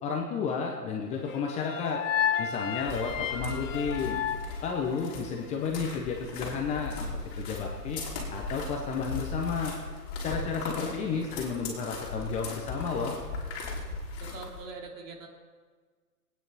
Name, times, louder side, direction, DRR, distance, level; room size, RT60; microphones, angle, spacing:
voice 1, 0.0-2.0 2.4-4.2 4.6-7.1 7.4-8.0 8.3-9.7 10.2-13.2, left 5 dB, 15° left, 1 dB, 0.8 m, -32 dB
sound 1, 1.3-5.5, left 8 dB, 55° left, 1.1 m, -32 dB
sound 2, 2.8-14.7, left 3 dB, 30° left, 3.2 m, -38 dB
voice 2, 10.2-11.3 14.2-15.3, right 4 dB, 55° right, 1 dB, 2.7 m, -44 dB
21.5 x 9.3 x 4.2 m, 1.5 s
hypercardioid pair, 135°, 48 cm